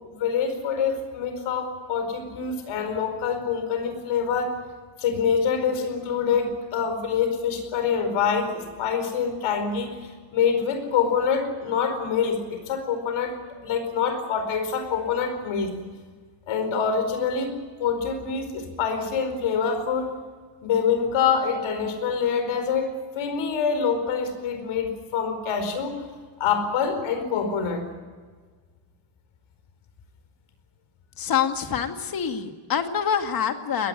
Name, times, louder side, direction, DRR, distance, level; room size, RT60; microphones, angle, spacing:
voice 1, 0.0-4.6 5.0-13.4 13.6-15.7 16.5-17.5 17.8-20.1 20.6-26.1 26.4-27.9, left 6 dB, 75° left, 8 dB, 4.8 m, -25 dB
voice 2, 31.2-33.9, left 8 dB, 45° left, 6 dB, 2.3 m, -26 dB
22.0 x 18.5 x 9.9 m, 1.5 s
cardioid pair, 155°, 49 cm